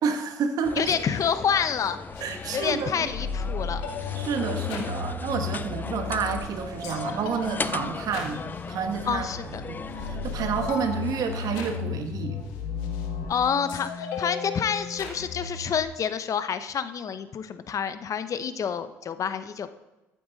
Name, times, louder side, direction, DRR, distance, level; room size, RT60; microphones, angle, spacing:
voice 1, 0.0-0.9 2.2-2.9 4.1-9.3 9.7-12.4, right 6 dB, 65° right, 6 dB, 1.5 m, -29 dB
sound 1, 0.6-11.8, left 4 dB, 25° left, 0.4 m, -38 dB
voice 2, 0.8-2.0 2.5-4.2 9.0-9.6 13.3-19.7, left 7 dB, 50° left, 11 dB, 0.8 m, -28 dB
sound 2, 2.1-15.8, left 5 dB, 80° left, 1.6 m, -35 dB
14.0 x 8.6 x 4.1 m, 1.0 s
supercardioid pair, 65°, 7 cm